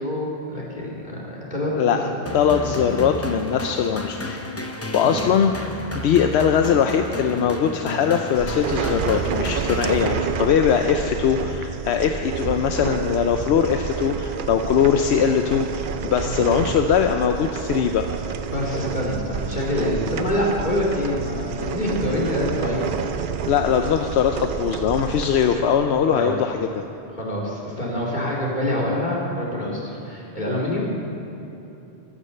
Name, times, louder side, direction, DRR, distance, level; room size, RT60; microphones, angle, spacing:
voice 1, 0.0-2.2 2.6-2.7 5.0-5.2 16.2-16.4 18.5-22.8 26.1-26.3 27.2-30.9, left 1 dB, 45° left, -4 dB, 2.9 m, -26 dB
voice 2, 1.7-2.1 2.3-4.4 4.9-18.0 23.5-26.8, left 7 dB, 80° left, 6 dB, 0.9 m, -21 dB
sound 1, 2.3-10.6, left 1 dB, 15° left, 0.7 m, -32 dB
sound 2, 8.3-25.6, right 6 dB, 55° right, 0.7 m, -29 dB
13.5 x 9.9 x 6.6 m, 3.0 s
omnidirectional pair, 1.1 m